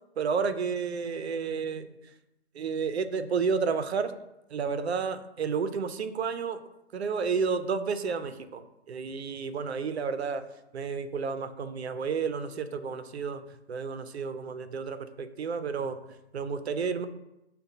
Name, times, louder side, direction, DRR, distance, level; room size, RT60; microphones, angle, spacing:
voice 1, 0.2-1.9 2.5-4.1 4.5-6.6 6.9-10.4 10.7-13.4 13.7-16.0 16.3-17.1, right 5 dB, 70° right, 10 dB, 0.5 m, -31 dB
6.5 x 2.2 x 2.7 m, 0.90 s
hypercardioid pair, 180°, 34 cm